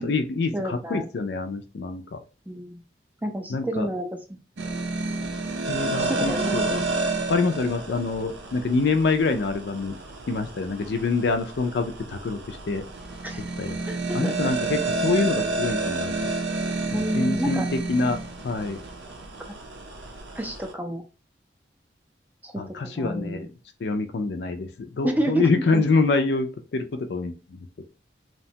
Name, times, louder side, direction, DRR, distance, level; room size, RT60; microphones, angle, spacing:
voice 1, 0.0-2.2 3.5-3.9 5.7-6.7 7.3-10.0 10.3-12.8 13.6-13.8 14.1-16.3 17.1-17.6 17.9-18.2 18.4-18.8 22.6-23.5 23.8-27.7, left 3 dB, 70° left, 7 dB, 0.4 m, -26 dB
voice 2, 0.5-1.1 2.5-2.8 3.2-4.4 6.0-6.8 13.2-13.4 13.9-14.3 16.9-17.6 20.3-21.0 22.4-22.6 23.0-23.5 25.0-25.8, right 1 dB, 10° right, 3 dB, 0.4 m, -29 dB
sound 1, 4.6-20.7, right 3 dB, 75° right, 0.6 m, -30 dB
2.9 x 2.2 x 2.7 m, 0.32 s
head